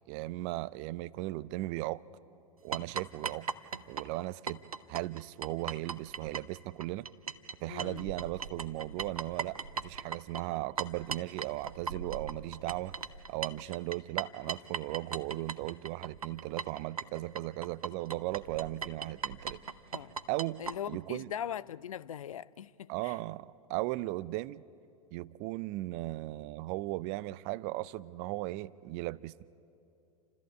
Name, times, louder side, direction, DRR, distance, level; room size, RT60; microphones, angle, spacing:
voice 1, 0.1-2.0 2.6-3.5 3.9-4.6 4.9-7.1 7.6-13.0 13.3-19.6 20.3-20.6 20.9-21.3 22.9-24.6 25.1-29.3, right 18 dB, 40° right, 0.5 m, -37 dB
sound 1, 2.7-7.5 7.8-20.8, right 5 dB, 85° right, 0.7 m, -38 dB
voice 2, 7.7-8.1 19.9-20.1 20.6-23.1, left 9 dB, 70° left, 0.5 m, -40 dB
28.5 x 13.5 x 8.5 m
figure-of-eight pair, 95°, 18 cm